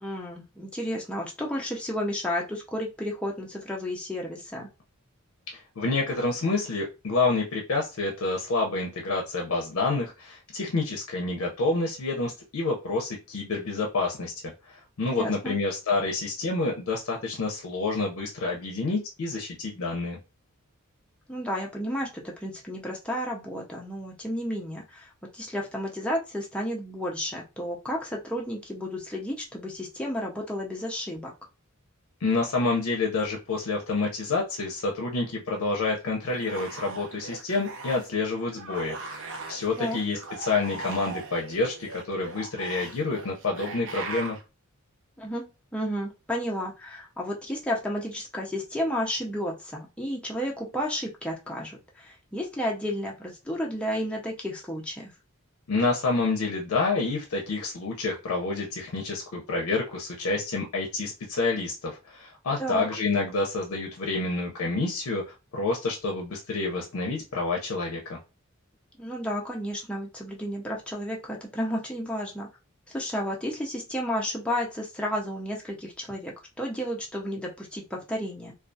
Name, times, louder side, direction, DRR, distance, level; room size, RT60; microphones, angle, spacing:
voice 1, 0.0-4.7 15.1-15.6 21.3-31.3 39.8-40.0 45.2-45.5 45.7-55.1 62.6-62.9 69.0-72.5 72.9-78.5, equal, 5° left, -2 dB, 0.4 m, -32 dB
voice 2, 5.5-20.2 32.2-44.4 55.7-65.2 65.5-68.2, left 3 dB, 70° left, 0 dB, 0.5 m, -28 dB
sound 1, 36.3-38.2 38.5-44.4, right 3 dB, 60° right, 0.6 m, -39 dB
2.3 x 2.2 x 2.5 m, 0.28 s
head